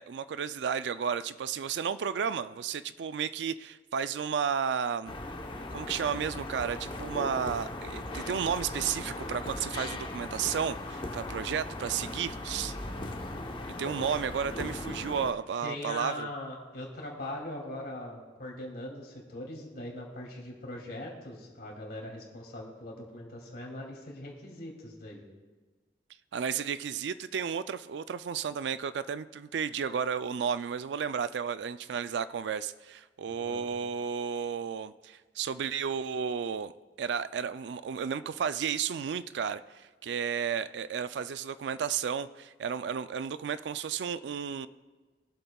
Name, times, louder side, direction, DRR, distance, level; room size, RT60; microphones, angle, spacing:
voice 1, 0.0-5.2 5.7-12.8 13.8-16.3 26.3-36.7 37.0-44.7, right 7 dB, 75° right, 14 dB, 0.4 m, -33 dB
sound 1, 5.1-15.3, left 2 dB, 30° left, 0.9 m, -38 dB
voice 2, 15.6-25.2 33.3-33.7, left 1 dB, 60° left, -1 dB, 2.6 m, -41 dB
22.5 x 8.0 x 2.3 m, 1.3 s
head